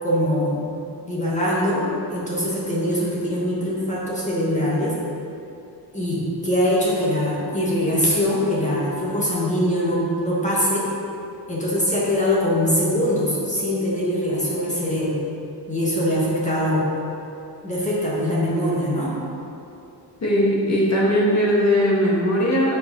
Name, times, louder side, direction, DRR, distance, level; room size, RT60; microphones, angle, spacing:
voice 1, 0.0-0.7 1.0-5.0 5.9-10.9 11.5-15.2 15.7-16.9 17.6-19.1, equal, 15° left, -7 dB, 1.6 m, -22 dB
voice 2, 20.2-22.8, equal, 40° left, -5 dB, 1.8 m, -19 dB
8.1 x 5.1 x 5.4 m, 2.9 s
wide cardioid pair, 175°, 43 cm